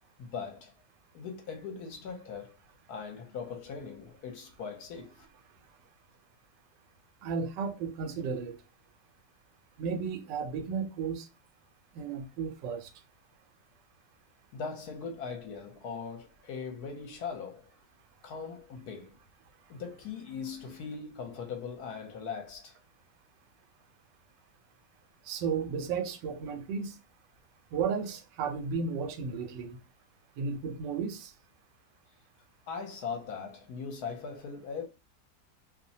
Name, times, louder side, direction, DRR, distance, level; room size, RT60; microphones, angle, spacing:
voice 1, 0.2-0.7 1.1-2.6 2.9-5.3 14.5-17.7 18.2-19.2 19.7-22.8 32.7-34.9, left 5 dB, 70° left, 1.1 m, -40 dB
voice 2, 7.2-8.6 9.8-11.3 11.9-12.9 25.3-27.0 27.7-29.8 30.4-31.3, right 5 dB, 85° right, 1.2 m, -34 dB
2.9 x 2.1 x 2.6 m
omnidirectional pair, 1.9 m